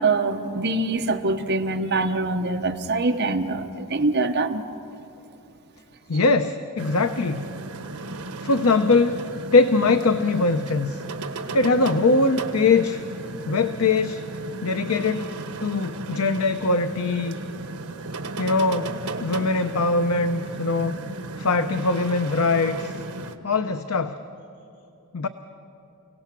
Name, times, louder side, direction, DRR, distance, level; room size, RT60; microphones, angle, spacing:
voice 1, 0.0-4.6, right 3 dB, 50° right, 4 dB, 1.2 m, -24 dB
voice 2, 6.1-7.5 8.4-9.2 9.5-11.0 11.5-13.0 13.5-14.2 14.6-15.3 15.6-17.4 18.4-18.9 19.2-21.0 21.4-22.9 23.4-24.2 25.1-25.3, left 3 dB, 75° left, 9 dB, 0.7 m, -21 dB
sound 1, 6.8-23.4, right 3 dB, 80° right, 1.3 m, -35 dB
29.5 x 18.0 x 6.1 m, 2.8 s
head